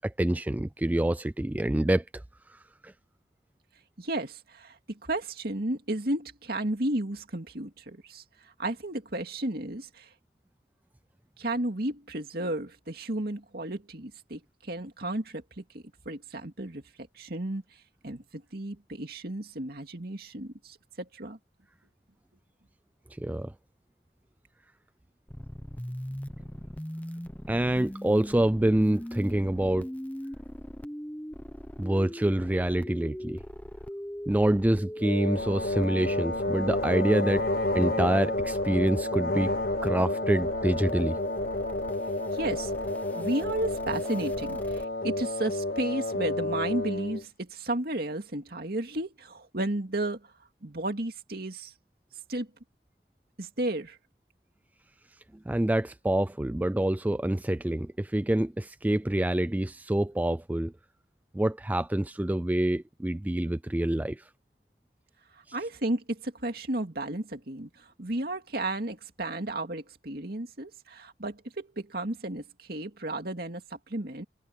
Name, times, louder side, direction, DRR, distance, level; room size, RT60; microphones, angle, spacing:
voice 1, 0.0-2.2 2.5-2.9 23.1-23.5 27.5-29.9 31.8-33.4 34.3-37.4 37.7-39.5 39.8-41.2 55.5-60.7 61.3-64.2 65.5-65.6, right 1 dB, 10° right, 0.3 m, -26 dB
voice 2, 4.0-8.2 8.6-10.1 11.4-16.8 17.1-17.6 18.0-21.4 42.3-42.7 43.1-50.3 50.6-51.7 52.3-52.5 53.4-54.0 65.5-74.2, right 1 dB, 55° right, 2.4 m, -33 dB
sound 1, 25.3-44.8, equal, 10° left, 0.9 m, -41 dB
sound 2, 35.0-47.2, left 2 dB, 50° left, 1.3 m, -30 dB
head